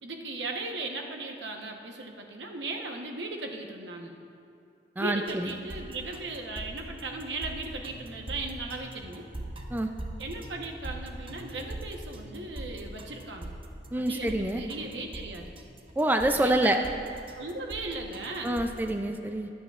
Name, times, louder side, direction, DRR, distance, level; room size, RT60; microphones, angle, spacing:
voice 1, 0.0-4.1 5.0-9.3 10.2-13.5 13.9-15.5 16.3-16.9 17.3-18.6, right 2 dB, 75° right, 2 dB, 1.1 m, -37 dB
voice 2, 5.0-5.5 9.7-9.9 13.9-14.6 16.0-16.8 18.4-19.5, right 1 dB, 10° right, 5 dB, 0.4 m, -26 dB
sound 1, 5.3-18.9, right 1 dB, 30° right, 0.9 m, -42 dB
22.5 x 8.5 x 2.4 m, 2.5 s
head